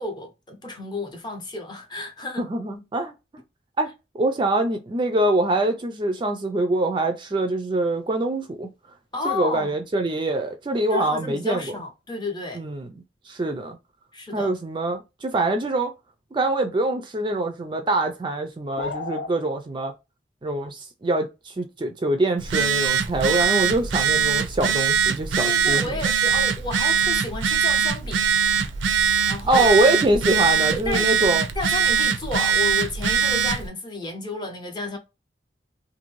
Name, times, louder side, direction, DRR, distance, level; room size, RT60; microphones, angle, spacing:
voice 1, 0.0-2.4 9.1-9.7 10.9-12.6 14.1-14.5 25.4-28.4 29.3-29.7 30.7-31.1 31.6-35.0, left 2 dB, 25° left, 0.6 m, -31 dB
voice 2, 2.4-3.1 3.8-3.9 4.1-8.7 9.2-11.6 12.6-12.9 13.3-13.8 14.3-15.9 16.3-19.9 20.4-25.9 29.5-31.4, right 2 dB, 25° right, 0.3 m, -24 dB
sound 1, 18.8-19.3, left 4 dB, 70° left, 0.4 m, -31 dB
Telephone, 22.4-33.7, right 7 dB, 90° right, 0.4 m, -22 dB
2.6 x 2.5 x 3.0 m
head